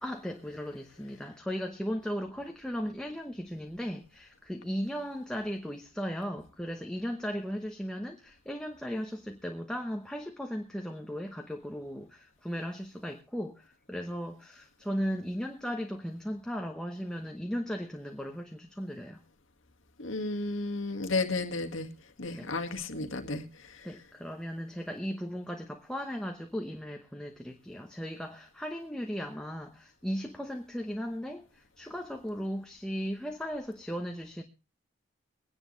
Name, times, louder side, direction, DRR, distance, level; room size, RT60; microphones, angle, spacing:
voice 1, 0.0-19.2 22.3-22.5 23.8-34.4, equal, 5° left, 0.9 m, -36 dB
voice 2, 20.0-21.9 22.2-23.4, left 3 dB, 80° left, 1.8 m, -32 dB
24.0 x 10.0 x 3.1 m
head